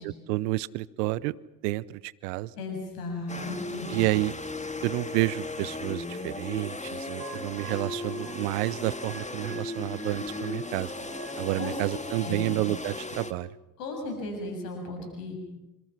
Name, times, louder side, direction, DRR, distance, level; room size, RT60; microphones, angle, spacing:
voice 1, 0.0-1.3 1.6-2.5 3.9-4.3 4.8-10.9 11.4-13.5, right 19 dB, 75° right, 22 dB, 0.8 m, -30 dB
voice 2, 2.6-3.9 11.6-12.5 13.8-15.4, left 2 dB, 80° left, 3 dB, 7.4 m, -36 dB
sound 1, 3.3-13.3, left 2 dB, 15° left, 2.4 m, -37 dB
sound 2, 7.2-11.9, right 7 dB, 55° right, 4.6 m, -48 dB
27.5 x 27.0 x 5.9 m, 1.0 s
hypercardioid pair, 45°, 46 cm